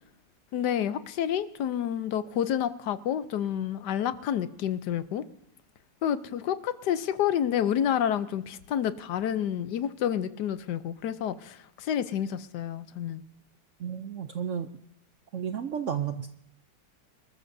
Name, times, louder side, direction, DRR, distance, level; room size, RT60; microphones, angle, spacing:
voice 1, 0.5-5.3 6.0-13.2, left 9 dB, 70° left, 13 dB, 1.2 m, -29 dB
voice 2, 13.8-14.7 15.3-16.3, right 8 dB, 65° right, 9 dB, 0.8 m, -32 dB
25.5 x 13.5 x 2.7 m, 0.81 s
omnidirectional pair, 1.9 m